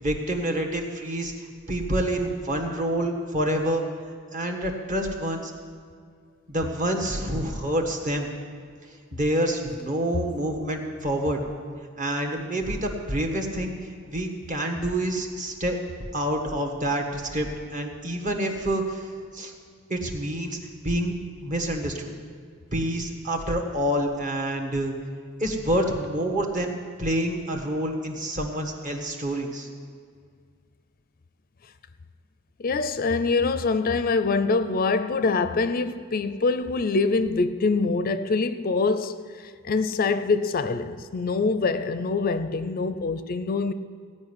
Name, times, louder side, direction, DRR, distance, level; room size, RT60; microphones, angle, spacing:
voice 1, 0.0-3.8 4.3-5.5 6.5-8.3 9.1-11.4 12.0-13.7 14.1-15.8 16.1-19.1 19.3-19.5 19.9-20.6 20.8-21.1 21.4-22.1 22.7-24.9 25.4-26.7 27.0-29.7, right 1 dB, 40° right, 1.6 m, -27 dB
voice 2, 32.6-43.7, left 4 dB, 45° left, 0.5 m, -24 dB
16.0 x 5.5 x 9.7 m
head